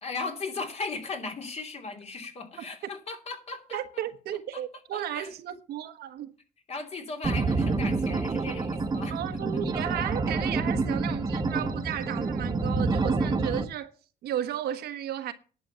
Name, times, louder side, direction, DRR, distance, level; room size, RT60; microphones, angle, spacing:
voice 1, 0.0-3.8 4.5-4.6 4.9-5.3 6.7-9.6, left 3 dB, 40° left, 3.0 m, -37 dB
voice 2, 3.7-6.3 9.1-13.9 14.2-15.3, right 11 dB, 70° right, 1.3 m, -34 dB
sound 1, 7.2-13.6, right 3 dB, 25° right, 1.3 m, -28 dB
11.0 x 6.9 x 7.1 m
cardioid pair, 110°, 17 cm